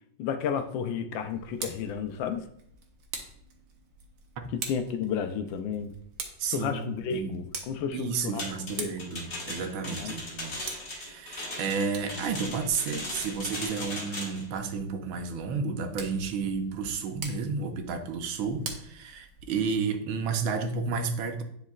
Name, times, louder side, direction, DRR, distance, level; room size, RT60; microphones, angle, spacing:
voice 1, 0.2-2.5 4.5-5.9 6.5-8.9 10.0-10.1, left 7 dB, 80° left, 8 dB, 1.3 m, -32 dB
Tick, 1.3-19.7, right 5 dB, 70° right, 1.5 m, -45 dB
voice 2, 6.4-6.8 7.1-7.4 7.9-21.4, right 5 dB, 85° right, 5 dB, 1.6 m, -32 dB
sound 1, 8.4-14.5, left 1 dB, 30° left, 1.4 m, -38 dB
9.8 x 4.1 x 2.4 m, 0.70 s
omnidirectional pair, 2.1 m